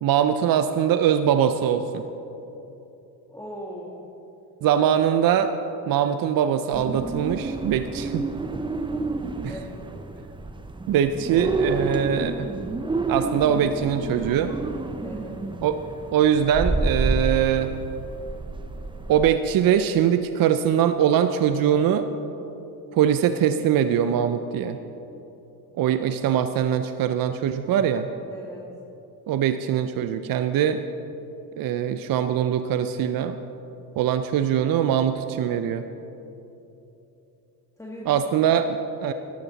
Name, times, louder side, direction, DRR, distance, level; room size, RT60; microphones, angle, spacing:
voice 1, 0.0-2.0 4.6-5.5 5.9-8.2 9.4-9.5 10.9-12.5 13.1-14.5 15.6-15.8 16.1-17.7 19.1-22.1 22.9-24.8 25.8-28.1 29.3-30.8 31.6-33.4 34.0-35.8 38.1-39.1, right 9 dB, 55° right, 9 dB, 0.6 m, -22 dB
voice 2, 3.3-4.1 9.5-9.8 15.0-15.4 28.3-28.7 37.8-38.2, equal, 5° left, -3 dB, 1.7 m, -39 dB
sound 1, 6.7-19.3, right 3 dB, 10° right, 0.6 m, -29 dB
13.0 x 12.5 x 4.1 m, 2.9 s
supercardioid pair, 80°, 41 cm